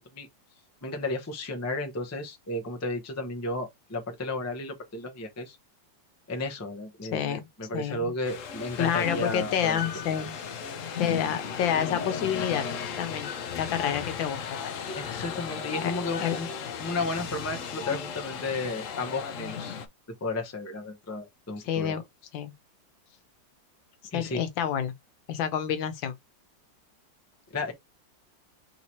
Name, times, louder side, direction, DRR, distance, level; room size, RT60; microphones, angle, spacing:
voice 1, 0.8-5.6 6.3-9.8 14.9-16.5 16.8-19.8 20.2-22.0 24.1-24.4 27.5-27.7, left 2 dB, 20° left, 0.4 m, -33 dB
voice 2, 7.1-7.4 7.7-8.0 8.8-10.3 11.0-12.6 13.0-14.8 15.8-15.9 16.2-16.4 21.6-22.0 22.3-22.5 24.1-24.9 25.3-26.1, left 9 dB, 90° left, 1.6 m, -29 dB
sound 1, 8.2-19.9, left 6 dB, 60° left, 0.8 m, -35 dB
3.8 x 3.0 x 4.1 m
omnidirectional pair, 2.0 m